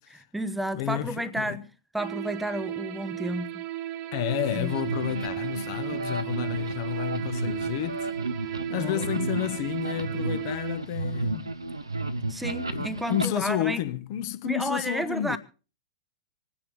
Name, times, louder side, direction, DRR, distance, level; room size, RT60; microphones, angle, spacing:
voice 1, 0.1-1.7 1.9-3.6 4.5-4.7 5.9-6.0 8.7-9.0 12.3-13.8 14.4-15.4, right 1 dB, 5° right, 1.0 m, -32 dB
voice 2, 0.7-1.6 4.1-8.1 8.4-11.5 12.7-15.4, left 13 dB, 45° left, 1.2 m, -31 dB
sound 1, 2.0-10.8, right 13 dB, 35° right, 0.9 m, -35 dB
sound 2, 4.3-13.3, right 2 dB, 85° right, 1.1 m, -33 dB
27.0 x 10.0 x 3.5 m
figure-of-eight pair, 100°, 2 cm